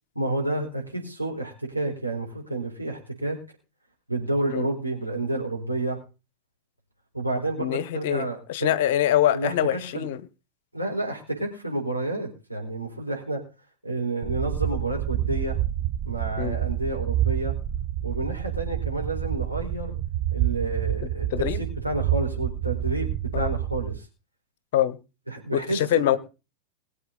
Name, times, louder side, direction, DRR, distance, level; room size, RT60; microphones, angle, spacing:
voice 1, 0.1-3.4 4.1-6.0 7.1-8.8 9.3-10.1 10.7-13.4 13.8-15.6 16.0-17.5 18.0-19.9 20.3-21.3 21.6-24.0 25.3-26.2, right 2 dB, 90° right, 4.3 m, -30 dB
voice 2, 7.6-10.2 16.4-16.6 21.0-21.6 23.3-23.5 24.7-25.0 25.5-26.2, left 12 dB, 50° left, 1.1 m, -24 dB
sound 1, 14.2-24.0, right 12 dB, 35° right, 1.0 m, -28 dB
21.5 x 8.0 x 4.0 m
figure-of-eight pair, 90°, 0 cm